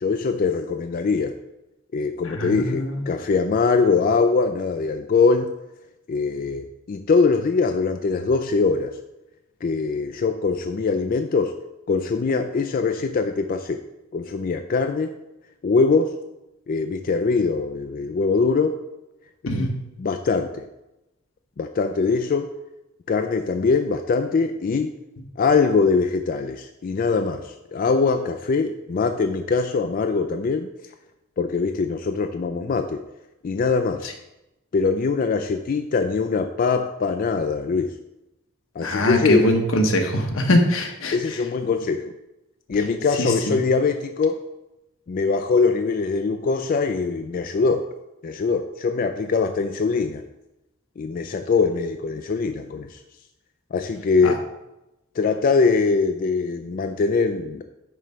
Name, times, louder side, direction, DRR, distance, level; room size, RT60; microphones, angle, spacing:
voice 1, 0.0-1.3 1.9-5.5 6.1-8.9 9.6-11.5 11.9-13.8 14.1-15.1 15.6-16.1 16.7-18.8 19.5-19.7 20.0-20.6 21.6-22.5 23.1-24.9 25.4-30.7 31.4-33.0 33.4-34.1 34.7-37.9 38.8-39.5 41.1-42.0 42.7-44.4 45.1-47.8 48.2-50.2 51.0-53.0 53.7-54.4 55.2-57.6, left 4 dB, 45° left, 6 dB, 0.3 m, -22 dB
voice 2, 2.3-3.0 19.5-19.7 38.8-41.4 43.2-43.6 54.2-54.3, left 1 dB, 80° left, 3 dB, 1.1 m, -22 dB
8.9 x 3.2 x 5.6 m, 0.94 s
head